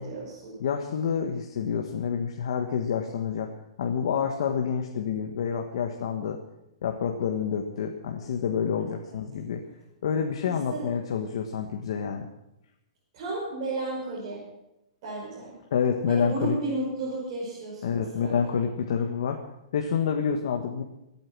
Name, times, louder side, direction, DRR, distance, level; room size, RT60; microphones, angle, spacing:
voice 1, 0.0-0.5 9.1-9.2 10.4-10.9 13.1-14.4 15.0-15.5 16.1-18.5, right 2 dB, 35° right, -7 dB, 5.9 m, -33 dB
voice 2, 0.6-3.5 3.8-6.4 6.8-9.6 10.0-12.3 15.7-16.6 17.8-19.4 19.7-20.8, left 7 dB, 60° left, 3 dB, 1.5 m, -28 dB
25.0 x 9.0 x 6.1 m, 0.88 s
hypercardioid pair, 175°, 3 cm